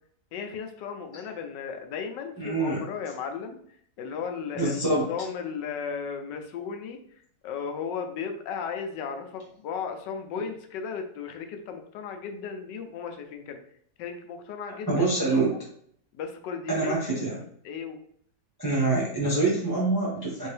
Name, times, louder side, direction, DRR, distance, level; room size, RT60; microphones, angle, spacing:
voice 1, 0.3-3.6 4.0-7.0 7.4-13.6 14.0-15.6 16.1-16.9 17.3-18.0, left 6 dB, 85° left, 5 dB, 1.2 m, -35 dB
voice 2, 2.4-2.8 4.6-5.1 14.9-15.5 16.7-17.4 18.6-20.5, right 3 dB, 25° right, -5 dB, 0.5 m, -25 dB
3.6 x 2.7 x 3.2 m, 0.63 s
omnidirectional pair, 1.9 m